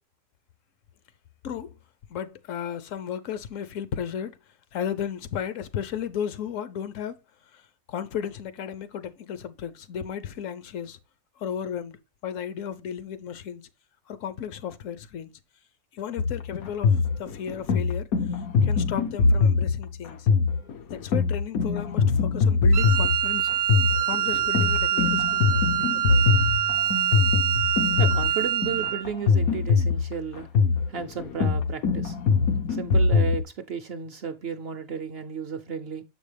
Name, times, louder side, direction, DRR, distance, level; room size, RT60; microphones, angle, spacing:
voice 1, 1.4-1.8 2.1-4.4 4.7-7.2 7.5-7.6 7.9-11.0 11.4-13.6 14.1-15.3 15.9-18.1 18.6-20.3 20.9-23.5 24.1-25.6 26.1-26.2, left 8 dB, 70° left, 1.0 m, -34 dB
sound 1, 16.2-33.4, left 4 dB, 90° left, 1.3 m, -23 dB
Wind instrument woodwind instrument, 22.7-29.1, right 11 dB, 80° right, 1.0 m, -25 dB
voice 2, 26.0-26.5 28.0-30.5 30.9-32.2 32.7-36.0, right 6 dB, 60° right, 0.7 m, -33 dB
7.0 x 5.2 x 3.3 m
omnidirectional pair, 1.4 m